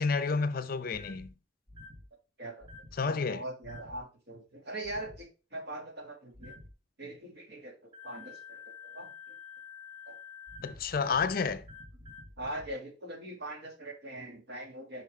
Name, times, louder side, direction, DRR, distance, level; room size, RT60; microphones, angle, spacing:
voice 1, 0.0-1.3 3.0-3.4 10.6-11.6, left 5 dB, 50° left, 0.5 m, -30 dB
sound 1, 0.9-1.3 1.7-2.0 2.6-3.0 3.6-4.0 4.8-5.2 6.3-6.7 7.9-12.7, left 4 dB, 25° right, 2.7 m, -48 dB
voice 2, 3.0-6.6 7.0-9.4 10.1-10.2 11.0-11.1 12.4-15.0, right 1 dB, 65° right, 1.9 m, -42 dB
6.1 x 5.6 x 3.2 m
head